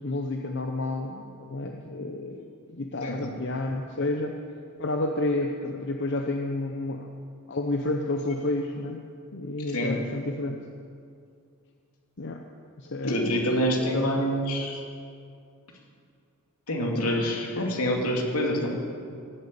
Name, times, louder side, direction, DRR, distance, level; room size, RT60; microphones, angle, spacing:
voice 1, 0.0-4.4 4.8-7.1 7.5-9.0 9.3-10.6 12.2-12.4 12.8-13.3 13.9-14.4, left 2 dB, 55° left, 3 dB, 0.8 m, -30 dB
voice 2, 3.0-3.3 9.7-10.0 13.0-14.8 16.7-18.8, equal, 80° left, 0 dB, 2.8 m, -26 dB
17.0 x 8.1 x 8.7 m, 2.4 s
head